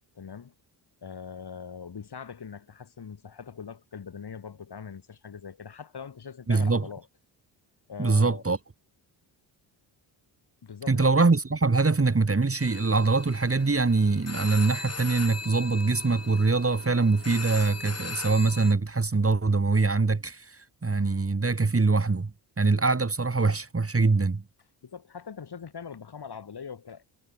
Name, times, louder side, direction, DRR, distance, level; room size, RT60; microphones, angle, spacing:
voice 1, 0.2-0.5 1.0-7.1 7.9-8.4 10.6-11.1 24.8-27.0, left 6 dB, 50° left, 7.6 m, -42 dB
voice 2, 6.5-6.9 8.0-8.6 10.9-22.3 22.6-24.4, right 3 dB, 25° right, 5.3 m, -23 dB
sound 1, 12.6-18.7, left 4 dB, 30° left, 7.9 m, -39 dB
supercardioid pair, 60°, 49 cm